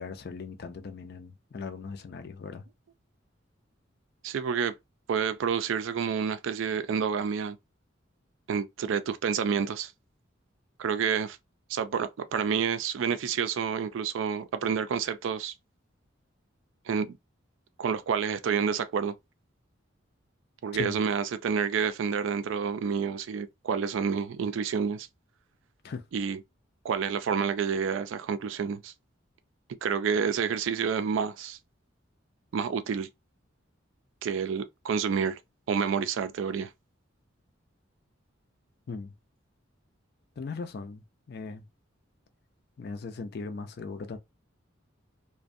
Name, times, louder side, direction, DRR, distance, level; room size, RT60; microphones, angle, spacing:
voice 1, 0.0-2.6 20.8-21.0 25.8-26.0 38.9-39.1 40.4-41.0 41.3-41.6 42.8-44.2, left 4 dB, 55° left, 0.4 m, -38 dB
voice 2, 4.2-4.7 5.1-7.6 8.5-9.9 10.8-11.4 11.7-15.5 16.9-17.2 17.8-19.1 20.6-25.1 26.1-26.4 26.8-28.9 29.8-31.6 32.5-33.1 34.2-35.4 35.7-36.7, right 6 dB, 75° right, 0.3 m, -29 dB
2.5 x 2.2 x 2.5 m
head